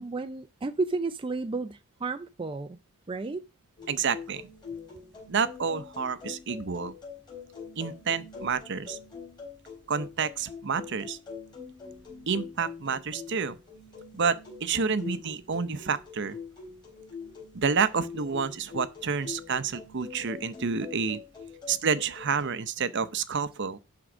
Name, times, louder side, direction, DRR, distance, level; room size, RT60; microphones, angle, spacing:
voice 1, 0.0-2.8 3.1-3.4, right 3 dB, 25° right, 0.4 m, -32 dB
sound 1, 3.8-22.5, left 5 dB, 20° left, 3.8 m, -44 dB
voice 2, 3.9-4.5 5.3-6.9 7.8-9.0 9.9-11.2 12.3-13.6 14.1-16.4 17.5-21.2 21.7-23.8, right 5 dB, 55° right, 0.7 m, -29 dB
11.0 x 3.8 x 6.0 m
head